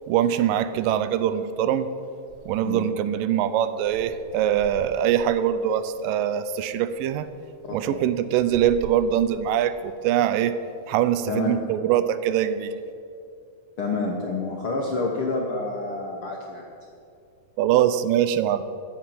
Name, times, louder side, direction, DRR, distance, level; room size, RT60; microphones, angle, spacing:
voice 1, 0.1-1.9 2.5-7.3 7.7-10.5 10.9-12.7 17.6-18.6, right 10 dB, 80° right, 12 dB, 2.2 m, -23 dB
voice 2, 7.6-8.0 11.3-11.5 13.8-16.7, left 3 dB, 70° left, -1 dB, 1.3 m, -28 dB
14.0 x 5.9 x 9.2 m, 2.5 s
omnidirectional pair, 4.0 m